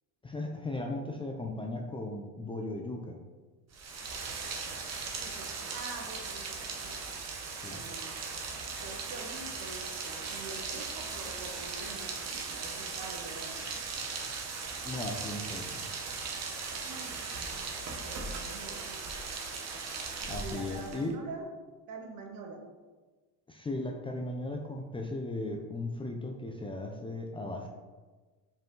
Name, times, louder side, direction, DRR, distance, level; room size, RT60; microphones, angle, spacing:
voice 1, 0.2-3.2 7.6-7.8 14.9-15.9 20.3-21.2 23.5-27.7, left 2 dB, 15° left, 2 dB, 0.4 m, -37 dB
Rain, 3.7-21.1, right 4 dB, 40° right, 1.0 m, -38 dB
voice 2, 5.0-7.0 7.6-8.1 8.8-13.7 16.8-17.3 18.0-19.1 20.2-21.5 21.9-22.6, right 3 dB, 60° right, 2 dB, 1.2 m, -45 dB
5.3 x 5.0 x 3.8 m, 1.3 s
cardioid pair, 125°, 39 cm